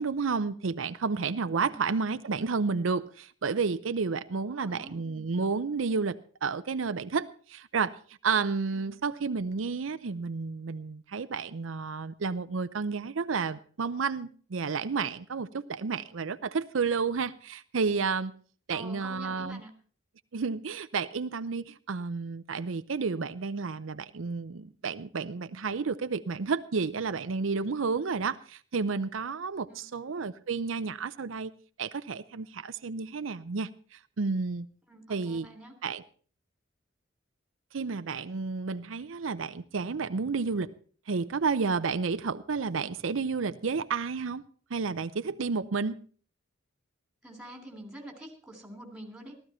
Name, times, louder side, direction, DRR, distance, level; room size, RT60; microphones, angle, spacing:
voice 1, 0.0-8.0 8.2-18.3 18.7-19.6 20.3-31.5 31.8-34.7 35.1-35.5 35.8-36.0 37.7-40.7 41.1-44.4 44.7-46.0, right 4 dB, 85° right, 0.6 m, -31 dB
voice 2, 4.4-5.0 8.7-9.0 18.7-19.7 29.7-30.2 34.9-35.7 47.2-49.4, right 1 dB, 5° right, 3.1 m, -47 dB
15.0 x 13.5 x 4.3 m
head